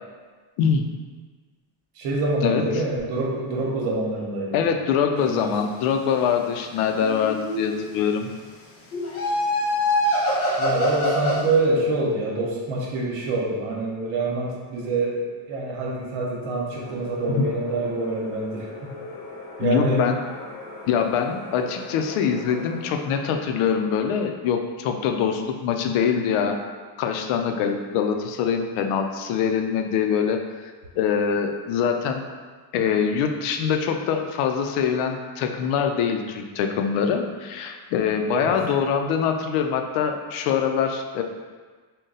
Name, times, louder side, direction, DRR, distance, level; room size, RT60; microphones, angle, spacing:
voice 1, 0.6-0.9 2.4-2.6 4.5-8.3 17.4-17.5 19.6-20.2 20.9-26.6 27.0-30.4 31.0-32.3 32.7-41.2, left 7 dB, 80° left, 5 dB, 0.6 m, -24 dB
voice 2, 1.9-4.6 5.2-5.5 10.6-18.9 19.6-20.0 38.3-38.5, right 2 dB, 75° right, -2 dB, 1.1 m, -26 dB
sound 1, 6.9-7.9 8.9-11.5, left 1 dB, 30° left, 0.4 m, -24 dB
sound 2, 16.7-23.1, left 2 dB, 50° left, 0.8 m, -40 dB
3.8 x 2.2 x 3.9 m, 1.4 s
cardioid pair, 160°, 50 cm